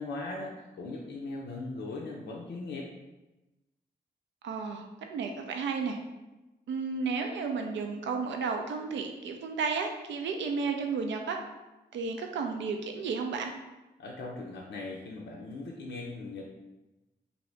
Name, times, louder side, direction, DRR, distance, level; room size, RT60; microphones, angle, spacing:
voice 1, 0.0-2.9 14.0-16.5, left 3 dB, 65° left, -2 dB, 0.5 m, -39 dB
voice 2, 4.4-4.8 5.1-6.0 6.7-11.4 11.9-13.5, right 5 dB, 70° right, 4 dB, 0.4 m, -32 dB
2.7 x 2.6 x 3.2 m, 1.1 s
supercardioid pair, 40°, 19 cm